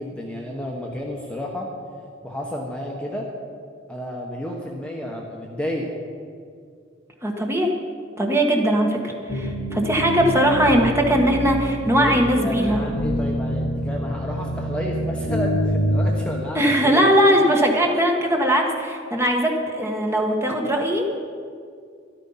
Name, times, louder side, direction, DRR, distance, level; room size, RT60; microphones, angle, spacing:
voice 1, 0.0-1.7 2.2-3.3 3.9-5.9 11.9-17.1, equal, 5° left, -2 dB, 1.1 m, -31 dB
voice 2, 7.2-7.7 8.2-12.8 16.5-21.0, equal, 15° right, 1 dB, 1.4 m, -20 dB
sound 1, 9.3-16.4, equal, 65° left, 0.8 m, -26 dB
13.5 x 11.5 x 5.7 m, 2.2 s
head